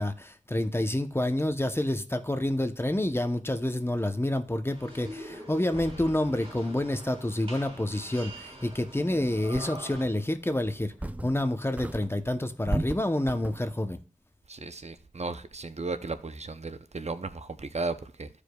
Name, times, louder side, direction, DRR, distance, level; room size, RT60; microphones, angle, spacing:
voice 1, 0.0-10.9 11.2-14.0, left 1 dB, 20° left, 0.8 m, -28 dB
sound 1, 4.7-10.0, equal, 45° right, 3.8 m, -44 dB
sound 2, 8.9-9.0 9.5-10.1 10.6-11.5 11.8-13.8, right 1 dB, 10° right, 0.5 m, -35 dB
voice 2, 14.5-18.3, right 3 dB, 60° right, 0.6 m, -35 dB
14.5 x 5.0 x 2.3 m
wide cardioid pair, 45°, 13 cm